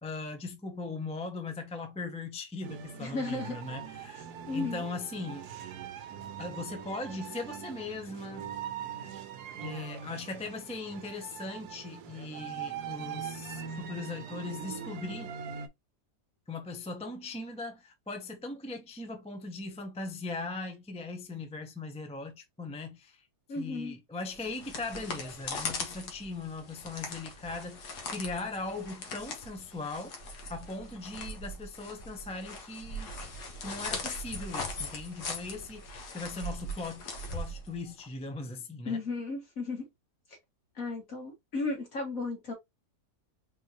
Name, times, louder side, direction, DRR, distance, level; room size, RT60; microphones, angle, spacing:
voice 1, 0.0-4.2 4.5-5.5 6.4-8.5 9.6-15.3 16.5-23.3 23.6-33.1 33.6-37.1 37.3-39.0, left 3 dB, 10° left, 0.3 m, -39 dB
sound 1, 2.6-15.7, right 7 dB, 75° right, 1.2 m, -42 dB
voice 2, 3.0-3.6 4.5-4.8 23.5-24.0 38.9-39.9 40.8-42.5, left 3 dB, 55° left, 2.3 m, -34 dB
sound 2, 24.3-38.1, left 2 dB, 75° left, 1.8 m, -40 dB
4.3 x 3.7 x 2.9 m
omnidirectional pair, 1.7 m